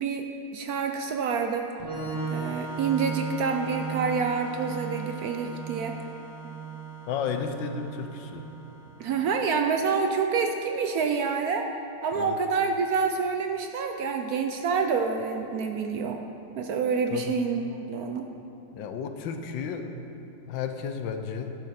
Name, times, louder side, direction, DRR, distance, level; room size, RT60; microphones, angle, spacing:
voice 1, 0.0-1.7 2.3-6.0 9.0-11.7 12.0-16.2 16.6-18.3, right 5 dB, 65° right, 5 dB, 1.0 m, -27 dB
Organ, 1.8-9.3, right 5 dB, 20° right, 1.9 m, -36 dB
voice 2, 7.1-8.5 12.1-12.4 17.1-17.3 18.7-19.9 20.5-21.6, left 6 dB, 85° left, 7 dB, 1.5 m, -33 dB
12.0 x 10.5 x 4.3 m, 2.9 s
omnidirectional pair, 2.0 m